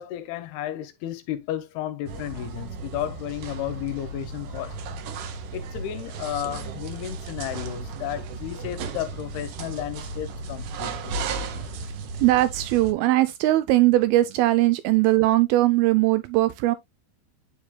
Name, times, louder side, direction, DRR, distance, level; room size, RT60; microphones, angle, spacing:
voice 1, 0.0-4.8 5.5-11.2 11.5-11.7, left 12 dB, 80° left, 2.4 m, -33 dB
sound 1, 2.1-12.9, right 3 dB, 70° right, 2.2 m, -35 dB
voice 2, 12.2-16.8, right 17 dB, 90° right, 2.1 m, -20 dB
9.6 x 4.8 x 2.2 m
omnidirectional pair, 4.9 m